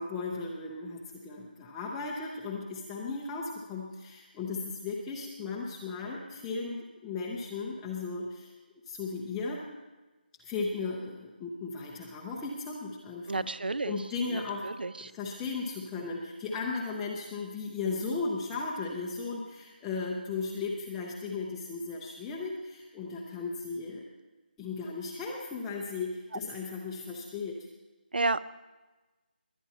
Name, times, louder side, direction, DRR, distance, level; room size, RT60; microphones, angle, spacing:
voice 1, 0.0-8.5 8.9-9.6 10.4-13.5 13.8-14.7 15.1-24.0 24.6-27.7, left 4 dB, 5° left, -3 dB, 0.5 m, -36 dB
voice 2, 13.3-14.0 14.3-15.1 28.1-28.4, right 3 dB, 70° right, 17 dB, 0.6 m, -31 dB
21.5 x 10.0 x 4.2 m, 1.2 s
figure-of-eight pair, 170°, 5 cm